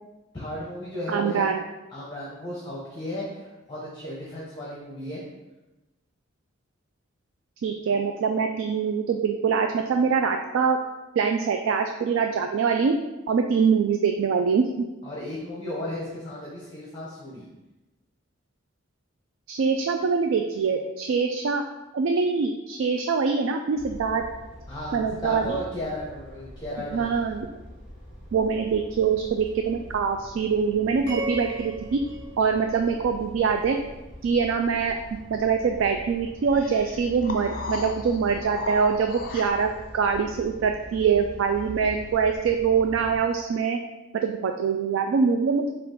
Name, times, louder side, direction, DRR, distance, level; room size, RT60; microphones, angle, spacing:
voice 1, 0.3-1.5 1.9-5.2 15.0-17.5 24.7-27.2, left 1 dB, 20° left, -5 dB, 0.8 m, -35 dB
voice 2, 1.1-1.6 7.6-10.8 11.2-13.0 13.3-14.9 19.5-21.6 21.9-24.2 24.9-25.6 26.9-27.5 28.3-32.0 32.4-33.8 34.2-35.0 35.3-43.8 44.1-45.7, right 5 dB, 90° right, 4 dB, 0.3 m, -24 dB
sound 1, 23.8-43.2, equal, 5° right, 1.4 m, -44 dB
sound 2, 31.1-33.4, right 1 dB, 50° right, 1.1 m, -36 dB
sound 3, 36.5-39.9, left 3 dB, 45° left, 0.5 m, -37 dB
5.8 x 2.4 x 3.7 m, 1.0 s
head